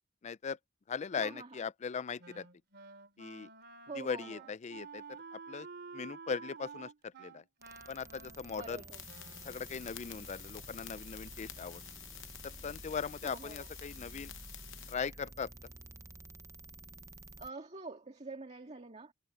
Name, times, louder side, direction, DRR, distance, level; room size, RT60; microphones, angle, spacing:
voice 1, 0.2-0.6 0.9-2.5 3.2-3.5 4.0-5.0 5.3-5.7 5.9-6.9 7.2-7.4 7.9-8.8 9.4-11.8 12.4-14.3 14.9-15.5, left 6 dB, 35° left, 0.4 m, -39 dB
voice 2, 1.2-1.6 3.9-4.4 8.5-9.0 13.2-13.7 17.4-19.1, right 3 dB, 30° right, 2.0 m, -46 dB
Wind instrument woodwind instrument, 2.2-9.7, right 4 dB, 50° right, 3.0 m, -51 dB
sound 1, 7.6-17.5, right 2 dB, 15° right, 0.6 m, -51 dB
sound 2, 8.9-14.9, left 13 dB, 60° left, 0.9 m, -51 dB
head